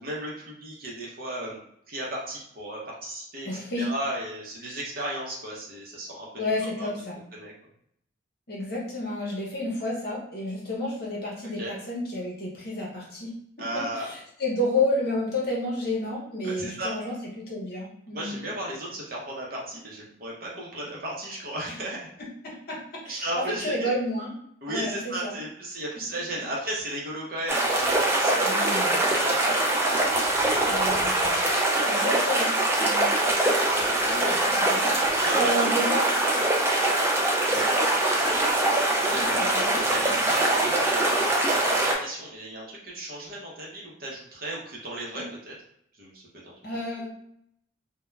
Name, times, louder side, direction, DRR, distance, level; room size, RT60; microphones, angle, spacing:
voice 1, 0.0-1.6 1.9-3.5 3.8-6.5 6.8-6.9 7.3-7.5 11.5-11.8 13.6-14.1 16.4-16.9 18.1-22.0 23.1-23.9 24.6-30.8 33.7-34.4 35.1-35.7 36.3-36.5 37.5-37.7 39.0-39.3 39.8-45.5 46.0-46.8, right 1 dB, 45° right, -3 dB, 0.7 m, -35 dB
voice 2, 3.4-3.9 6.4-7.2 8.5-13.3 13.7-18.4 22.4-24.3 24.7-25.4 28.4-29.0 30.6-31.4 31.9-33.1 33.9-36.1 39.1-40.2 45.1-45.3 46.6-47.1, left 1 dB, 50° left, -3 dB, 0.8 m, -31 dB
sound 1, 27.5-41.9, right 2 dB, 10° right, 0.3 m, -23 dB
2.3 x 2.2 x 3.1 m, 0.71 s
head